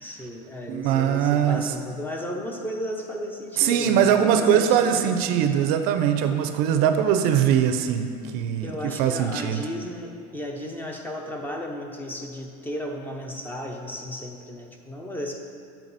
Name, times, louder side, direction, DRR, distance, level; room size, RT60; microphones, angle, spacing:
voice 1, 0.0-5.2 8.6-15.3, equal, 10° left, 2 dB, 0.5 m, -34 dB
voice 2, 0.7-1.6 3.6-8.1 8.3-9.6, right 9 dB, 60° right, 8 dB, 0.5 m, -21 dB
7.5 x 4.6 x 4.0 m, 2.4 s
cardioid pair, 150°, 17 cm